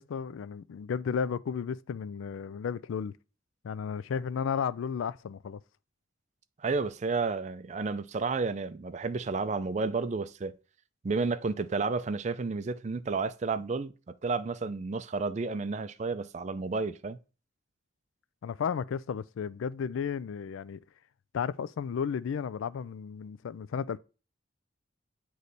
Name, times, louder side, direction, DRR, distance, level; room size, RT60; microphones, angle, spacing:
voice 1, 0.0-3.1 3.6-5.6 18.4-20.8 21.3-24.0, left 7 dB, 85° left, 0.3 m, -33 dB
voice 2, 6.6-10.6 11.0-17.2, right 4 dB, 35° right, 0.4 m, -31 dB
8.2 x 3.2 x 3.9 m
head